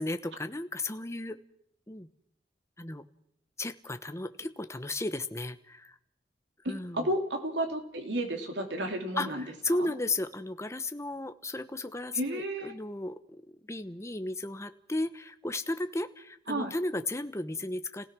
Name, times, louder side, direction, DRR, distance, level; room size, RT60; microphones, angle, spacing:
voice 1, 0.0-1.4 1.9-2.1 2.8-3.0 3.6-5.9 6.7-7.1 9.2-13.2 13.7-18.1, left 2 dB, 15° left, 10 dB, 1.0 m, -34 dB
voice 2, 6.6-9.4 9.8-9.9 12.1-12.7 16.5-16.7, right 1 dB, 80° right, 4 dB, 3.1 m, -32 dB
30.0 x 16.5 x 6.1 m, 0.74 s
head